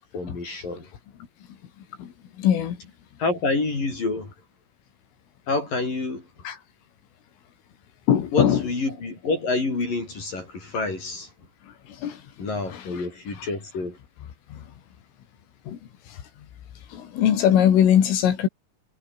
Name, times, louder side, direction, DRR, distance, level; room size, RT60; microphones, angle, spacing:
voice 1, 0.1-0.9 3.2-4.3 5.5-6.3 8.3-11.3 12.4-14.0, left 3 dB, 45° left, 8.8 m, -28 dB
voice 2, 2.4-2.8 6.5-6.6 8.1-8.6 12.0-12.2 14.5-14.6 15.7-15.8 16.9-18.5, left 9 dB, 80° left, 5.5 m, -20 dB
omnidirectional pair, 5.7 m